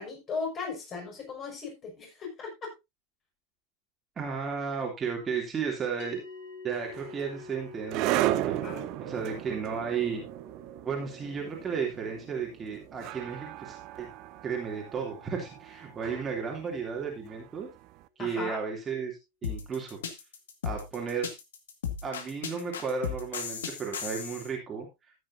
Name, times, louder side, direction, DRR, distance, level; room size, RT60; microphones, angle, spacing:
voice 1, 0.0-2.7 8.4-8.9 18.2-18.6, left 4 dB, 30° left, 0 dB, 5.9 m, -37 dB
voice 2, 4.2-6.2 6.6-8.6 9.0-10.2 10.8-14.1 14.4-17.7 18.2-20.0 20.6-21.3 22.0-24.9, right 6 dB, 20° right, 0 dB, 2.8 m, -34 dB
sound 1, 6.0-16.5, left 4 dB, 45° left, 3.0 m, -50 dB
sound 2, 6.7-17.8, right 15 dB, 40° right, 0.7 m, -35 dB
sound 3, 19.4-24.5, left 7 dB, 60° left, 1.8 m, -35 dB
14.0 x 9.3 x 2.7 m, 0.23 s
figure-of-eight pair, 90°, 0 cm